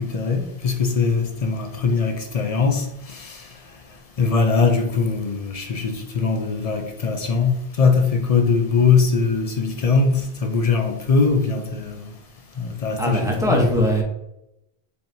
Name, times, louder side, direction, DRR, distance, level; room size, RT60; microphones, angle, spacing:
voice 1, 0.0-3.4 4.2-12.1 12.6-13.6, left 4 dB, 55° left, 0.4 m, -21 dB
voice 2, 13.0-14.0, equal, 5° right, 0.7 m, -20 dB
4.4 x 3.4 x 2.6 m
omnidirectional pair, 1.1 m